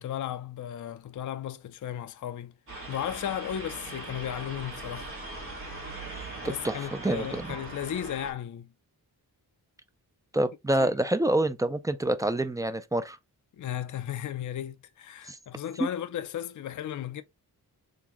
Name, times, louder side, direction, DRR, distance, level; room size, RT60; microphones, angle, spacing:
voice 1, 0.0-2.5 2.9-5.5 6.4-8.7 10.8-10.9 13.6-17.2, left 10 dB, 50° left, 0.4 m, -35 dB
sound 1, 2.7-8.3, right 2 dB, 35° right, 2.0 m, -40 dB
voice 2, 6.6-7.6 10.3-13.2 15.2-15.4 15.8-15.9, right 1 dB, 10° right, 0.3 m, -27 dB
3.9 x 3.4 x 3.0 m
wide cardioid pair, 145°, 38 cm